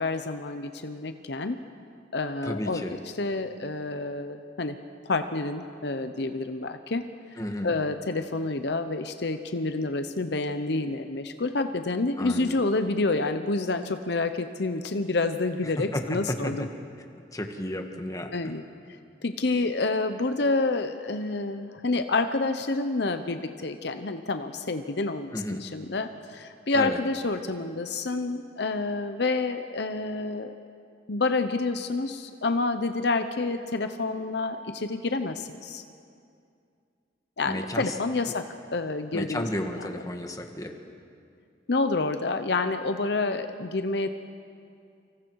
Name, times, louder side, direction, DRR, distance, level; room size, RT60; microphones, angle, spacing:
voice 1, 0.0-1.6 2.1-4.8 5.0-7.0 7.6-16.7 18.3-18.6 19.2-30.5 31.1-35.8 37.4-39.5 41.7-44.1, left 3 dB, 65° left, 8 dB, 0.9 m, -28 dB
voice 2, 2.4-2.9 7.4-7.7 12.2-12.6 15.8-16.5 17.3-18.6 25.3-25.6 26.7-27.0 37.5-37.9 39.1-40.7, left 1 dB, 20° left, 4 dB, 1.6 m, -32 dB
29.5 x 25.5 x 4.8 m, 2.4 s
head